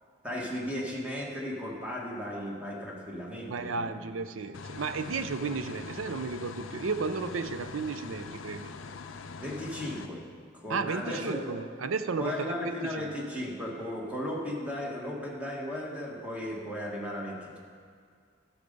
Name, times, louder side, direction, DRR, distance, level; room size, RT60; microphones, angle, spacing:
voice 1, 0.2-4.1 9.4-10.2 10.5-11.6 12.2-17.6, left 1 dB, 5° right, -3 dB, 1.7 m, -36 dB
voice 2, 3.5-8.7 10.7-13.1, right 4 dB, 75° right, 10 dB, 0.5 m, -33 dB
sound 1, 4.5-10.1, left 4 dB, 65° left, 0.5 m, -43 dB
13.0 x 6.5 x 5.3 m, 2.1 s
head